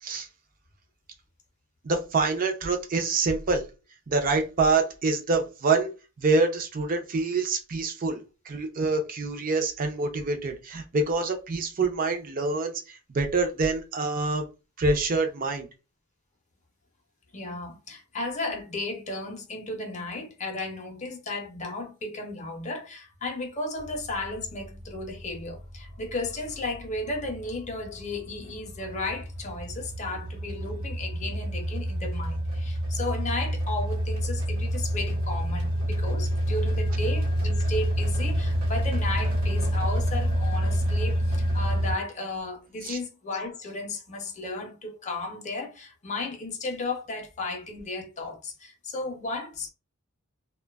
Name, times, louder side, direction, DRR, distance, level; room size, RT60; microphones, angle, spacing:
voice 1, 1.8-3.6 4.1-5.9 6.2-14.5 14.8-15.7 42.8-43.0, right 3 dB, 40° right, 0.5 m, -26 dB
voice 2, 17.3-49.7, left 2 dB, 35° left, 0.5 m, -34 dB
sound 1, 23.8-41.9, equal, 75° right, 0.9 m, -28 dB
2.5 x 2.2 x 2.3 m
head